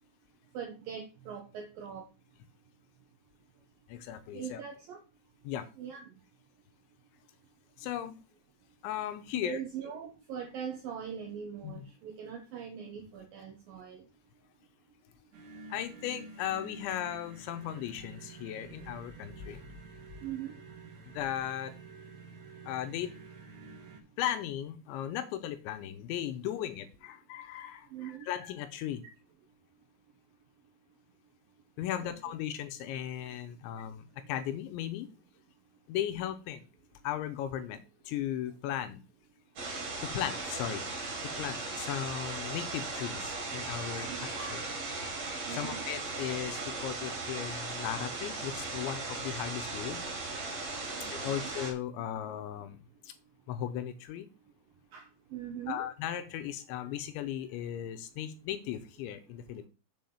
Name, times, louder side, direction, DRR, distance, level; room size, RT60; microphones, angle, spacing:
voice 1, 0.5-2.1 4.3-5.0 5.8-6.1 9.3-14.0 20.2-20.5 27.9-28.3 32.0-32.3 44.1-44.3 45.4-45.8 50.9-51.5 54.9-55.9, right 8 dB, 75° right, 3 dB, 2.1 m, -41 dB
voice 2, 3.9-4.6 5.4-5.7 7.8-8.2 8.8-9.6 11.6-11.8 15.7-19.6 21.1-21.8 22.7-23.1 24.2-29.0 31.8-35.1 35.9-36.7 37.0-39.0 40.0-40.8 41.4-44.6 45.5-50.0 51.1-52.8 53.1-53.2 53.5-54.3 55.7-59.7, left 11 dB, 80° left, 10 dB, 2.9 m, -37 dB
sound 1, 15.3-24.0, right 4 dB, 55° right, 2.3 m, -49 dB
sound 2, 39.6-51.7, right 3 dB, 40° right, 3.6 m, -37 dB
7.8 x 4.8 x 7.1 m, 0.32 s
omnidirectional pair, 5.6 m